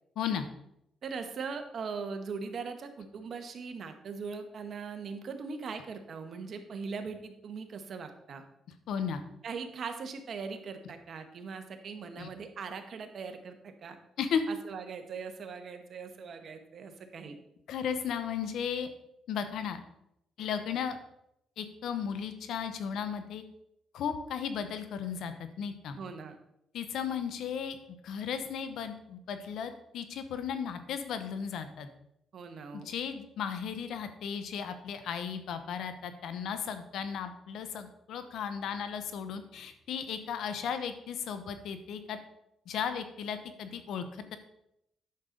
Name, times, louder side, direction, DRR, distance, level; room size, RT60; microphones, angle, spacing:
voice 1, 1.0-8.4 9.4-14.0 14.5-17.4 26.0-26.4 32.3-32.9, right 5 dB, 55° right, 7 dB, 1.2 m, -40 dB
voice 2, 8.9-9.2 12.2-12.3 14.2-14.4 17.7-18.9 19.3-19.8 20.4-21.0 21.6-23.4 23.9-26.0 26.7-27.8 28.0-31.9 32.7-42.2 42.7-44.4, left 7 dB, 75° left, 10 dB, 0.9 m, -35 dB
9.4 x 6.6 x 3.9 m, 0.80 s
cardioid pair, 90°, 0 cm